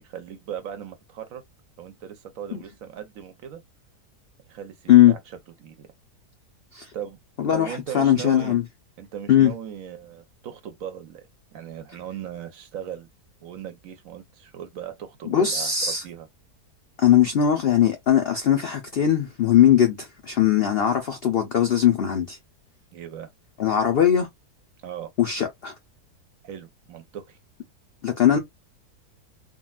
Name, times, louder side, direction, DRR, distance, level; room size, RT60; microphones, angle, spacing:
voice 1, 0.0-1.4 1.8-3.6 4.5-5.2 5.6-5.9 6.9-7.2 7.5-8.6 9.0-11.3 11.5-13.1 13.4-15.7 16.0-16.3 22.9-23.3 24.8-25.1 26.4-27.4, right 9 dB, 65° right, 0.9 m, -38 dB
voice 2, 7.4-8.6 9.3-9.5 15.3-16.0 17.0-22.4 23.6-24.3 25.2-25.7 28.0-28.4, left 10 dB, 85° left, 0.5 m, -19 dB
3.7 x 2.3 x 2.3 m
omnidirectional pair, 1.7 m